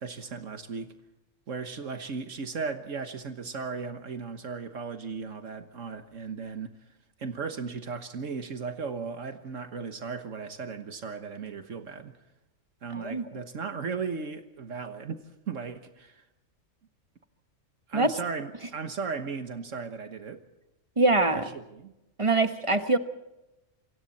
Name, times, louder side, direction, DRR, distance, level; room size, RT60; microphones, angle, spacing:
voice 1, 0.0-0.9 1.5-6.8 7.2-12.1 12.8-16.2 17.9-20.4 21.3-21.9, right 5 dB, 70° right, 1.6 m, -36 dB
voice 2, 12.9-13.2 17.9-18.1 21.0-21.5 22.2-23.0, right 2 dB, 25° right, 1.3 m, -23 dB
27.5 x 24.0 x 4.2 m
omnidirectional pair, 1.4 m